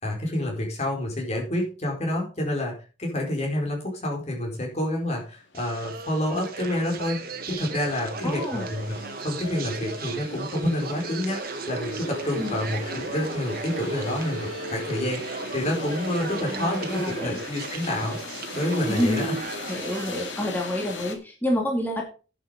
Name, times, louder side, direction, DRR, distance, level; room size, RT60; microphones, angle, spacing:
voice 1, 0.0-8.9 9.2-11.4 11.7-18.2 18.5-19.4, left 1 dB, 35° left, 0 dB, 4.9 m, -28 dB
sound 1, 5.2-5.3 5.5-21.2, left 3 dB, 80° left, 2.2 m, -40 dB
sound 2, 5.5-20.3, right 3 dB, 55° right, 1.8 m, -35 dB
voice 2, 8.2-8.7 12.4-12.6 16.5-17.4 18.9-19.4 19.7-22.0, left 1 dB, 10° left, 0 dB, 2.6 m, -28 dB
11.0 x 7.0 x 5.3 m, 0.35 s
head